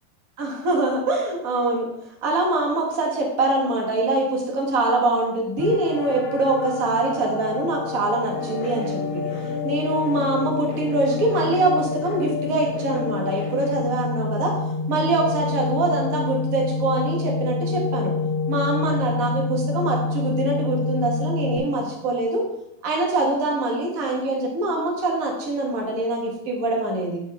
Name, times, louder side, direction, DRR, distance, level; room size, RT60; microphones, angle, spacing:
voice 1, 0.4-1.9 2.2-9.2 9.6-14.5 14.9-18.1 18.5-22.4 22.8-27.2, right 2 dB, 75° right, -1 dB, 0.7 m, -24 dB
sound 1, 5.6-21.6, left 3 dB, 75° left, 2.7 m, -28 dB
sound 2, 8.3-13.7, left 5 dB, 20° left, 1.5 m, -31 dB
10.0 x 5.5 x 4.2 m, 0.82 s
omnidirectional pair, 4.2 m